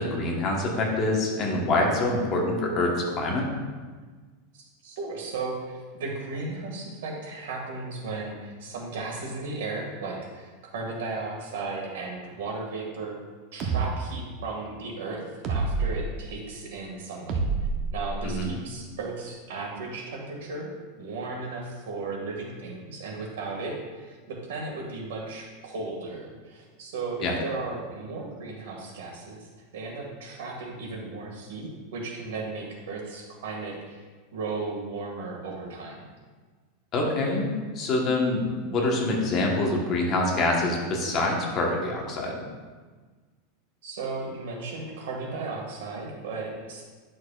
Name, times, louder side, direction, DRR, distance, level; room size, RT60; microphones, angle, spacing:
voice 1, 0.0-3.5 18.2-18.5 27.2-27.3 36.9-42.4, left 2 dB, 30° left, -1 dB, 1.2 m, -25 dB
voice 2, 4.5-13.2 13.5-15.2 15.5-17.4 17.9-34.1 34.3-36.1 43.8-46.8, right 3 dB, 85° right, -1 dB, 1.8 m, -35 dB
sound 1, 13.6-13.9 15.4-16.0 17.3-18.4, right 4 dB, 30° right, 0.8 m, -27 dB
10.5 x 6.4 x 2.4 m, 1.4 s
supercardioid pair, 170°, 0 cm